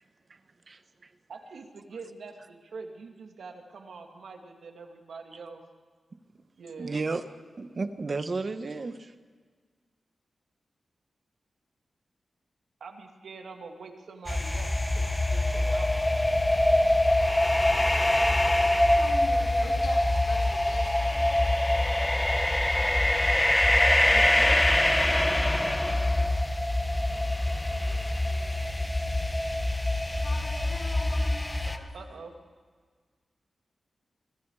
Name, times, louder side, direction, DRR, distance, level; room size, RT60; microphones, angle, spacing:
voice 1, 1.3-5.6 6.6-7.0 12.8-16.1 24.1-24.9 30.1-30.2 31.9-32.3, right 4 dB, 90° right, 3 dB, 2.7 m, -44 dB
voice 2, 6.8-7.2 7.6-9.1, right 3 dB, 50° right, 9 dB, 1.4 m, -32 dB
sound 1, 14.3-31.8, left 1 dB, 15° left, 1.4 m, -24 dB
voice 3, 18.9-21.3 27.8-28.9 30.2-32.2, left 3 dB, 85° left, -1 dB, 5.3 m, -44 dB
25.5 x 25.0 x 5.0 m, 1.5 s
wide cardioid pair, 90°, 0 cm